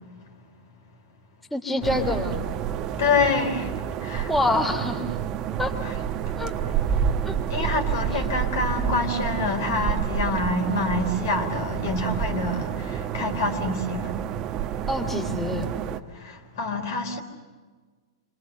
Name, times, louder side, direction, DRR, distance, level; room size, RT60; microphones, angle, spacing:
voice 1, 1.5-2.4 4.3-5.2 5.6-5.8 6.4-6.5 7.2-7.7 14.9-15.6, left 1 dB, 5° left, 3.1 m, -26 dB
sound 1, 1.8-16.0, right 8 dB, 30° right, 1.2 m, -29 dB
voice 2, 3.0-3.7 4.0-4.3 5.8-5.9 7.5-14.1 16.1-17.2, left 3 dB, 55° left, 4.2 m, -26 dB
29.5 x 26.0 x 6.7 m
figure-of-eight pair, 105°, 2 cm